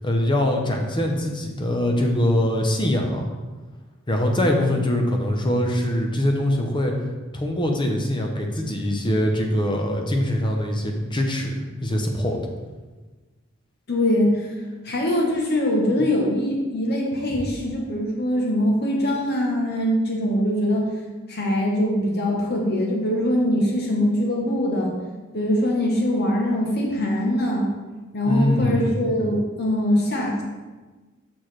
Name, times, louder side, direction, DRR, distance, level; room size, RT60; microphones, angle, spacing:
voice 1, 0.0-3.3 4.1-6.9 7.3-12.4 28.3-29.0, left 1 dB, 25° left, 2 dB, 0.8 m, -23 dB
voice 2, 13.9-14.3 14.8-20.9 21.3-24.9 25.3-27.7 28.1-30.4, left 1 dB, 50° left, -1 dB, 1.0 m, -22 dB
6.1 x 6.0 x 3.2 m, 1.3 s
head